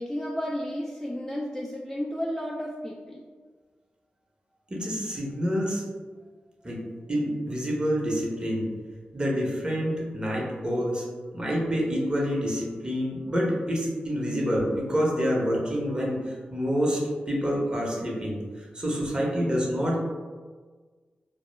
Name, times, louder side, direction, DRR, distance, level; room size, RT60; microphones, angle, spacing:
voice 1, 0.0-3.2, equal, 10° left, -3 dB, 0.3 m, -32 dB
voice 2, 4.7-5.8 6.6-6.8 7.1-8.7 9.1-11.1 11.3-20.0, equal, 25° right, -3 dB, 0.8 m, -27 dB
2.1 x 2.0 x 3.1 m, 1.4 s
supercardioid pair, 40°, 4 cm